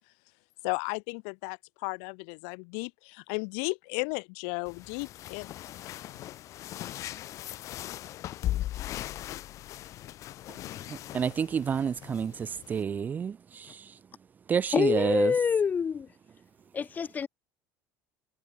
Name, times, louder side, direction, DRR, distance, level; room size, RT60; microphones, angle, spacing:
voice 1, 0.6-5.5 5.8-6.1, left 40 dB or more, 75° left, 1.1 m, -35 dB
sound 1, 4.7-12.8, left 13 dB, 40° left, 1.4 m, -39 dB
voice 2, 10.9-13.9 14.5-15.3, right 7 dB, 20° right, 0.8 m, -29 dB
voice 3, 14.7-16.1 16.7-17.3, left 6 dB, 20° left, 2.3 m, -26 dB
cardioid pair, 160°, 8 cm